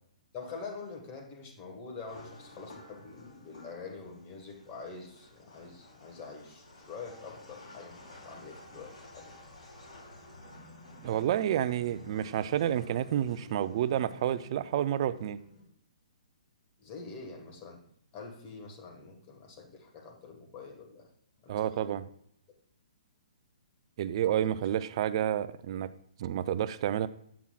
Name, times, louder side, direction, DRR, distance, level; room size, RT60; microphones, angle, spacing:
voice 1, 0.3-9.3 16.8-17.8 18.1-21.1 21.4-22.0 24.4-24.5, left 4 dB, 25° left, 1 dB, 1.5 m, -45 dB
sound 1, 2.1-15.6, left 2 dB, 70° left, 3.1 m, -52 dB
voice 2, 11.0-15.4 21.5-22.0 24.0-25.9 26.2-27.1, right 11 dB, 45° right, 15 dB, 0.4 m, -29 dB
8.3 x 7.1 x 2.4 m, 0.66 s
hypercardioid pair, 140°, 4 cm